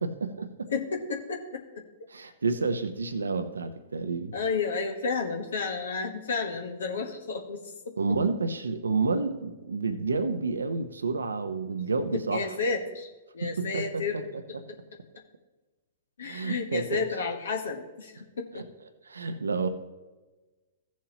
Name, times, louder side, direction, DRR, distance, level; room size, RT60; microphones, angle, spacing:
voice 1, 0.0-0.7 2.1-4.3 8.0-12.5 13.4-14.2 16.2-17.0 18.5-18.6 19.0-19.7, right 4 dB, 85° right, 9 dB, 0.8 m, -30 dB
voice 2, 0.7-1.8 4.3-7.9 12.1-13.1 13.3-14.3 16.2-18.6, left 4 dB, 75° left, 3 dB, 1.2 m, -31 dB
15.0 x 7.3 x 2.9 m, 1.2 s
hypercardioid pair, 115°, 0 cm